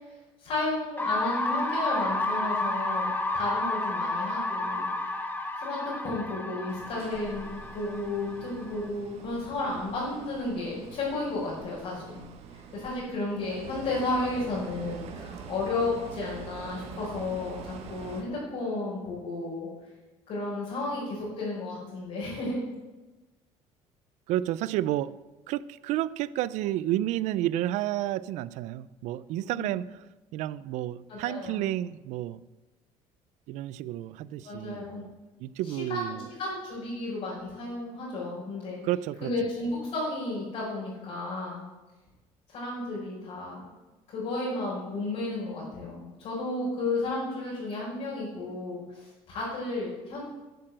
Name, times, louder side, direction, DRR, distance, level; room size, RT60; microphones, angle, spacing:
voice 1, 0.4-4.9 5.6-19.7 20.3-22.6 29.5-29.7 31.1-31.6 34.4-35.1 35.7-38.8 39.2-41.6 42.5-43.7 44.1-50.2, left 2 dB, 55° left, 4.9 m, -33 dB
sound 1, 1.0-8.8, left 2 dB, 15° left, 1.1 m, -31 dB
sound 2, 6.7-18.2, right 6 dB, 55° right, 1.5 m, -45 dB
voice 2, 24.3-25.1 25.5-30.0 30.3-32.4 33.5-35.1 35.4-36.3 38.8-39.3, right 14 dB, 70° right, 0.5 m, -31 dB
11.5 x 6.7 x 7.6 m
cardioid pair, 150°, 12 cm